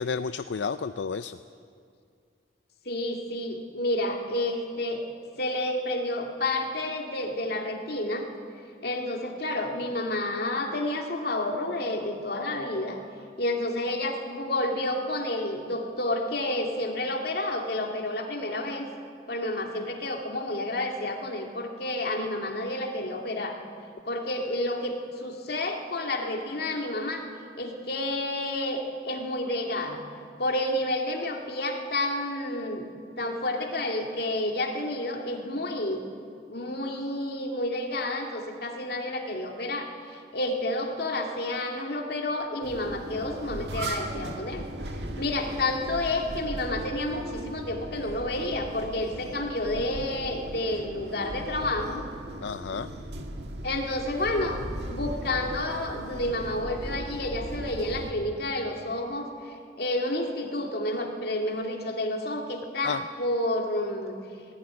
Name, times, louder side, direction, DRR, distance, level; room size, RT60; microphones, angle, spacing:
voice 1, 0.0-1.4 52.4-52.9 62.8-63.1, left 5 dB, 80° left, 11 dB, 0.5 m, -31 dB
voice 2, 2.9-5.0 5.4-8.3 8.8-13.0 13.4-18.9 19.3-23.6 24.0-27.2 27.6-30.0 30.4-32.9 33.2-36.0 36.5-44.7 45.2-52.0 53.6-54.6 54.8-64.1, left 1 dB, 60° left, 2 dB, 2.3 m, -30 dB
sound 1, 42.6-58.1, right 1 dB, 70° right, 1.7 m, -37 dB
18.0 x 15.0 x 9.7 m, 2.3 s
head